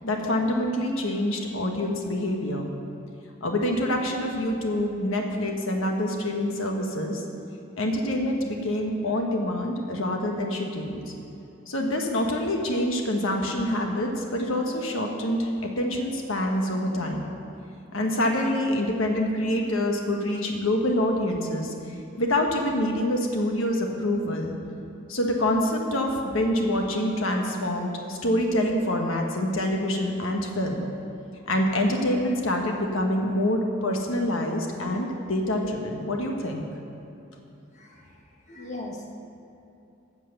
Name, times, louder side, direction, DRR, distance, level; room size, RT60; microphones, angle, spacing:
voice 1, 0.0-2.7 3.4-7.3 7.8-11.0 11.7-17.3 17.9-24.6 25.1-30.8 31.5-36.6, left 1 dB, 80° left, 1 dB, 1.4 m, -26 dB
voice 2, 37.7-38.1 38.5-39.1, left 2 dB, 35° left, 0 dB, 1.6 m, -38 dB
14.0 x 7.6 x 6.9 m, 2.8 s
head